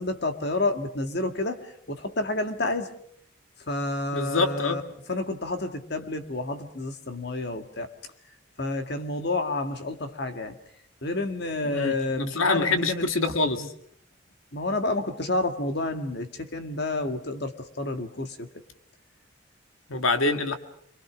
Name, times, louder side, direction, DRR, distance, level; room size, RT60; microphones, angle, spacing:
voice 1, 0.0-2.9 3.7-4.8 5.1-7.9 8.6-10.6 11.0-13.1 13.6-13.7 14.5-18.5, left 2 dB, 50° left, 7 dB, 1.8 m, -29 dB
voice 2, 4.1-4.8 11.6-13.7 19.9-20.6, left 3 dB, 80° left, 7 dB, 1.9 m, -25 dB
28.5 x 23.0 x 6.2 m, 0.64 s
head